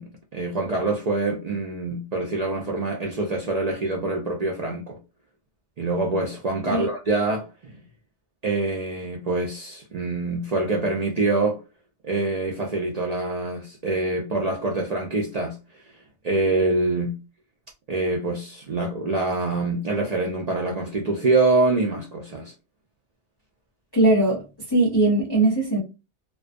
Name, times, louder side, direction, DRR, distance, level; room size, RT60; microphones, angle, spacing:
voice 1, 0.0-5.0 5.8-7.7 8.4-11.6 12.0-15.6 16.2-17.2 17.9-22.5, right 2 dB, 75° right, 0.3 m, -25 dB
voice 2, 23.9-24.4 24.7-25.8, right 2 dB, 25° left, 0.6 m, -19 dB
2.3 x 2.2 x 2.5 m
omnidirectional pair, 1.2 m